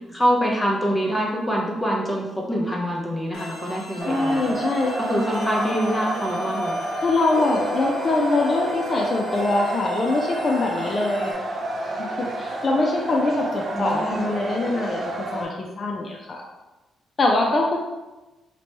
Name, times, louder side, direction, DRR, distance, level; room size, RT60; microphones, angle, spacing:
voice 1, 0.1-4.5 5.0-6.8 13.7-14.2, equal, 5° left, -2 dB, 0.6 m, -25 dB
sound 1, 3.3-11.3, left 3 dB, 85° left, 0.6 m, -37 dB
sound 2, 4.0-15.5, right 2 dB, 50° right, 0.6 m, -30 dB
voice 2, 4.1-4.9 7.0-11.3 12.0-16.4 17.2-17.8, left 2 dB, 45° left, 0 dB, 0.3 m, -23 dB
3.0 x 2.1 x 2.9 m, 1.1 s
cardioid pair, 95°, 0 cm